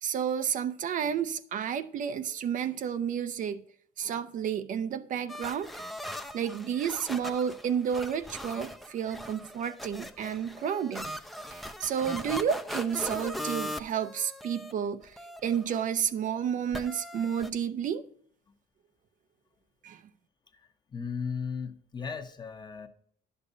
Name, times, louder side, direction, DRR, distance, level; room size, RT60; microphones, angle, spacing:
voice 1, 0.0-3.6 4.0-5.9 6.3-11.1 11.5-18.0 19.8-20.0, right 8 dB, 50° right, 0.5 m, -31 dB
sound 1, 5.3-14.7 15.0-15.9 16.7-17.5, equal, ahead, 0.4 m, -40 dB
voice 2, 20.9-22.9, left 6 dB, 25° left, 0.8 m, -36 dB
10.5 x 6.7 x 2.6 m
cardioid pair, 110°, 17 cm